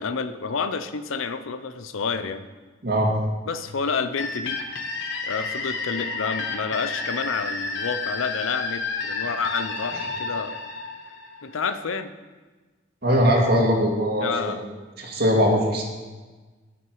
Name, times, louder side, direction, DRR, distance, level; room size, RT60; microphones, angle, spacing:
voice 1, 0.0-2.5 3.5-4.6 5.2-10.6 11.4-12.1 14.2-14.6, left 5 dB, 80° left, 12 dB, 0.6 m, -29 dB
sound 1, 4.2-11.7, left 4 dB, 65° left, 1.1 m, -31 dB
voice 2, 13.0-14.6 15.0-15.8, equal, 50° right, -1 dB, 2.1 m, -21 dB
16.5 x 6.1 x 4.8 m, 1.3 s
head